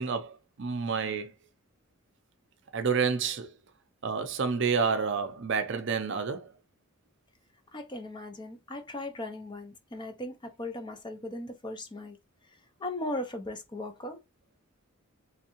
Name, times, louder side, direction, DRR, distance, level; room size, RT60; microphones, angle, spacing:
voice 1, 0.0-1.3 2.7-3.5 4.0-6.5, right 5 dB, 55° right, 0.5 m, -29 dB
voice 2, 7.7-12.2 12.8-14.2, left 1 dB, 20° left, 0.4 m, -38 dB
3.5 x 3.2 x 2.9 m
head